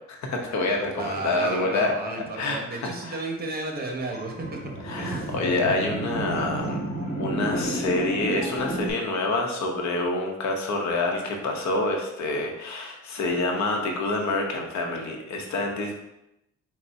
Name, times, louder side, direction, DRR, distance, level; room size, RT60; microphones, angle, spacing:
voice 1, 0.1-1.9 2.4-3.2 4.8-6.8 7.2-16.0, left 2 dB, 65° left, 2 dB, 1.0 m, -27 dB
voice 2, 1.0-4.6 5.0-5.4, right 2 dB, 30° right, 1 dB, 1.0 m, -33 dB
sound 1, 4.1-8.9, right 1 dB, 30° left, 1.4 m, -31 dB
4.0 x 2.3 x 4.6 m, 0.87 s
cardioid pair, 90°, 30 cm